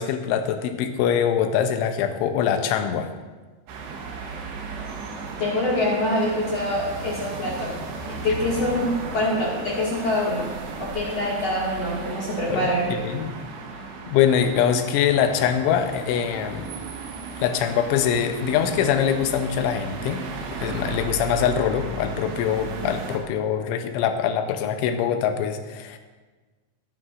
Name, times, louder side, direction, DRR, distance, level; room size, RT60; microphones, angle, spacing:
voice 1, 0.0-3.1 12.5-13.4 14.1-16.7 17.4-20.2 20.6-26.0, left 8 dB, 90° left, 7 dB, 3.2 m, -23 dB
sound 1, 3.7-23.2, right 4 dB, 70° right, 3.1 m, -35 dB
voice 2, 5.4-12.9, left 1 dB, 45° left, -6 dB, 2.3 m, -25 dB
19.5 x 9.5 x 2.6 m, 1.3 s
omnidirectional pair, 5.4 m